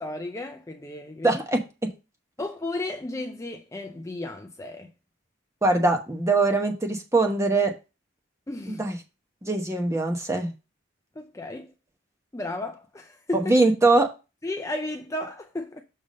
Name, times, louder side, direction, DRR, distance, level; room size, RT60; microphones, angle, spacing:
voice 1, 0.0-1.4 2.4-4.9 8.5-8.8 11.2-11.7 12.3-13.4 14.4-15.8, left 2 dB, 15° left, 0.5 m, -34 dB
voice 2, 1.2-1.9 5.6-7.7 8.7-9.0 9.4-10.5 13.3-14.1, right 2 dB, 15° right, 1.0 m, -22 dB
6.6 x 3.6 x 5.1 m
head